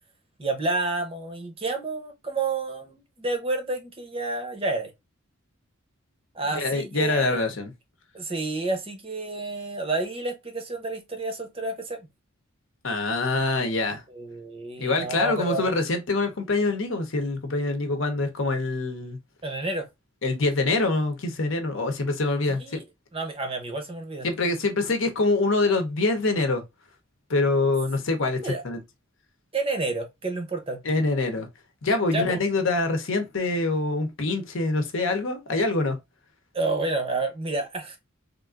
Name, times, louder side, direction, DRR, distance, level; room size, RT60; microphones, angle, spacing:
voice 1, 0.4-4.9 6.3-7.4 8.1-12.0 14.1-15.7 19.4-19.9 22.5-22.8 23.1-24.3 28.4-28.6 29.5-30.8 32.1-32.4 36.5-38.0, right 2 dB, 25° right, 0.6 m, -30 dB
voice 2, 6.5-7.7 12.8-14.0 14.8-19.2 20.2-22.8 24.2-26.6 27.3-28.8 30.8-31.5 31.8-36.0, left 3 dB, 65° left, 0.8 m, -25 dB
3.4 x 2.5 x 2.3 m
head